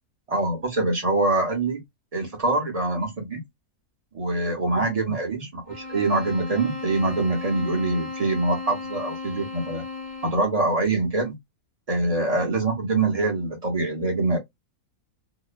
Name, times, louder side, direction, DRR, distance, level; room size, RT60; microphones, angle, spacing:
voice 1, 0.3-1.8 2.1-3.4 4.1-9.8 10.2-11.3 11.9-14.4, right 2 dB, 35° right, 0.6 m, -24 dB
sound 1, 5.7-10.6, left 3 dB, 5° left, 0.9 m, -35 dB
2.8 x 2.1 x 2.3 m
omnidirectional pair, 1.7 m